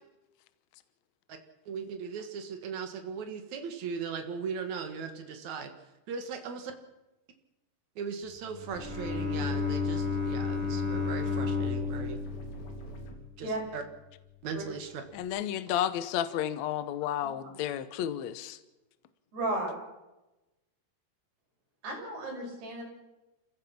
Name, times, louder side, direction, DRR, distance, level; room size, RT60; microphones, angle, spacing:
voice 1, 1.7-5.7 6.1-6.7 8.0-12.2 13.4-13.8 14.4-15.0, right 6 dB, 55° right, 2.8 m, -38 dB
Bowed string instrument, 8.5-13.7, left 5 dB, 20° left, 2.3 m, -33 dB
sound 1, 8.7-13.1, right 3 dB, 65° left, 4.7 m, -44 dB
voice 2, 15.1-18.6, left 11 dB, 85° left, 1.6 m, -32 dB
voice 3, 19.3-19.7 21.8-22.8, right 2 dB, 75° right, 7.9 m, -33 dB
28.0 x 16.0 x 6.0 m
omnidirectional pair, 4.6 m